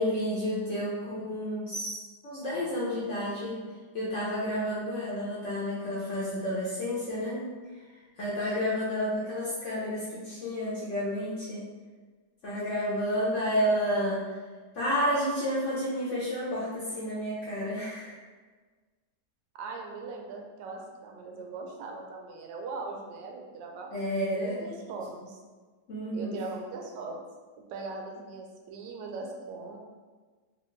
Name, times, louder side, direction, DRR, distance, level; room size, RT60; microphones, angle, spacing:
voice 1, 0.0-2.0 2.2-3.6 3.9-7.4 8.2-11.7 12.4-14.3 14.7-18.2 23.9-24.6 25.9-26.4, equal, 65° left, -8 dB, 0.7 m, -30 dB
voice 2, 19.6-23.9 24.2-25.4 26.1-27.2 27.7-29.8, right 3 dB, 85° right, 1 dB, 1.2 m, -40 dB
3.2 x 2.3 x 3.0 m, 1.4 s
omnidirectional pair, 1.9 m